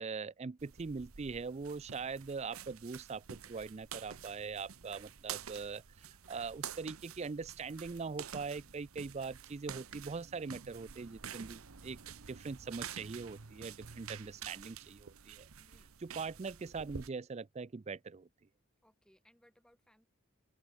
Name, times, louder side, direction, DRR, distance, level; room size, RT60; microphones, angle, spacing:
voice 1, 0.0-12.0 12.3-15.5 16.0-18.3, right 4 dB, 30° right, 0.4 m, -42 dB
sound 1, 0.6-17.1, right 8 dB, 85° right, 1.0 m, -49 dB
voice 2, 15.6-16.0 18.8-20.1, equal, 5° left, 7.8 m, -69 dB
open air
head